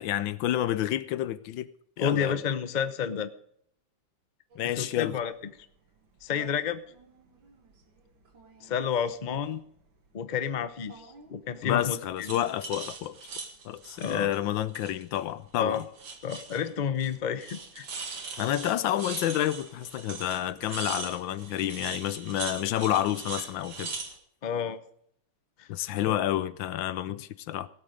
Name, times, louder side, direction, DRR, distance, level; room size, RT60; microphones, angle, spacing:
voice 1, 0.0-1.7 2.0-2.4 4.6-5.2 11.6-13.2 13.6-15.9 18.4-23.9 25.7-27.7, left 12 dB, 75° left, 1.4 m, -29 dB
voice 2, 2.0-3.3 4.8-5.3 6.2-6.8 8.6-9.6 10.1-12.4 14.0-14.3 15.6-15.8 16.2-17.9 24.4-24.8 25.6-25.7 26.0-26.2 27.1-27.2, left 7 dB, 55° left, 0.5 m, -30 dB
sound 1, 4.5-4.7 6.2-6.5 6.9-7.8 8.3-9.2 10.9-11.3 12.2-15.2 15.5-16.7 17.0-17.1 17.4-24.2, right 4 dB, 75° right, 2.7 m, -41 dB
18.0 x 8.5 x 5.1 m
omnidirectional pair, 2.1 m